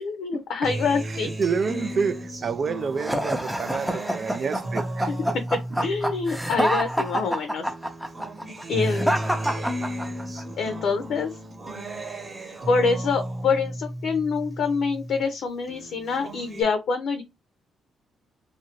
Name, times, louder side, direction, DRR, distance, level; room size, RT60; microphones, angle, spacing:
voice 1, 0.0-1.3 5.1-5.2 5.8-7.6 8.7-9.2 10.6-11.3 12.7-17.2, left 5 dB, 70° left, 0.6 m, -25 dB
Acoustic guitar, 0.6-7.3 7.7-15.3 15.7-16.6, right 1 dB, 25° right, 0.9 m, -34 dB
voice 2, 1.4-5.4 9.4-9.6, right 5 dB, 50° right, 0.3 m, -28 dB
sound 1, 3.0-10.4, equal, ahead, 0.6 m, -27 dB
2.6 x 2.5 x 2.9 m
cardioid pair, 90°, 0 cm